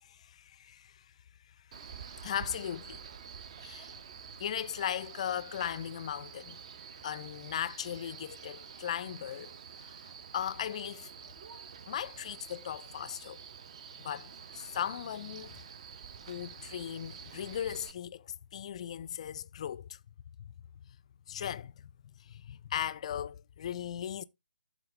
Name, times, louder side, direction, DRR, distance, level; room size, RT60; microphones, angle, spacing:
voice 1, 0.0-1.1 2.2-3.0 3.6-3.9 4.4-6.6 7.0-11.1 11.9-13.4 14.0-15.5 16.3-20.0 21.3-21.9 22.2-24.2, left 9 dB, 40° left, 0.4 m, -38 dB
Male speech man speaking, 1.7-17.9, right 7 dB, 40° right, 0.8 m, -48 dB
12.5 x 4.2 x 3.2 m
figure-of-eight pair, 140°, 5 cm